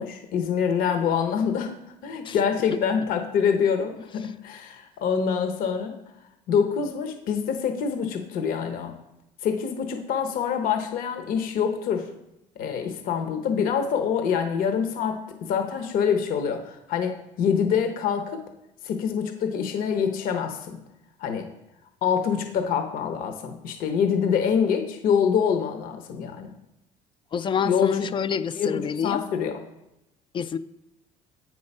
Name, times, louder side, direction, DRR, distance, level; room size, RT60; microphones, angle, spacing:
voice 1, 0.0-1.7 2.0-6.0 6.5-9.0 9.4-12.1 12.6-18.4 18.8-20.8 21.2-21.5 22.0-26.5 27.6-28.1 28.6-28.8 29.0-29.5, left 7 dB, 70° left, 6 dB, 0.9 m, -25 dB
voice 2, 27.3-29.2 30.3-30.6, left 7 dB, 35° left, 14 dB, 0.4 m, -27 dB
7.9 x 4.7 x 5.4 m, 0.89 s
cardioid pair, 100°, 15 cm